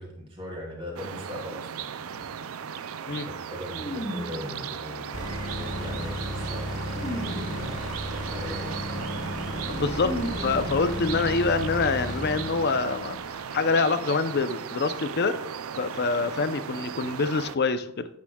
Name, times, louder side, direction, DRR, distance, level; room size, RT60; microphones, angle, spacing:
voice 1, 0.0-1.9 3.0-7.1 7.8-8.8, left 1 dB, 25° right, -2 dB, 2.9 m, -40 dB
sound 1, 1.0-17.6, right 7 dB, 90° right, 0.5 m, -37 dB
sound 2, 2.1-2.3 3.7-4.8 5.6-7.9 9.2-9.3 9.6-11.9 12.1-12.2 12.5-12.6, equal, 30° left, 2.1 m, -37 dB
sound 3, 5.1-14.3, equal, 85° left, 3.5 m, -35 dB
voice 2, 9.7-15.4 15.8-18.1, left 4 dB, 50° left, 11 dB, 0.6 m, -26 dB
9.4 x 8.8 x 2.3 m, 0.73 s
head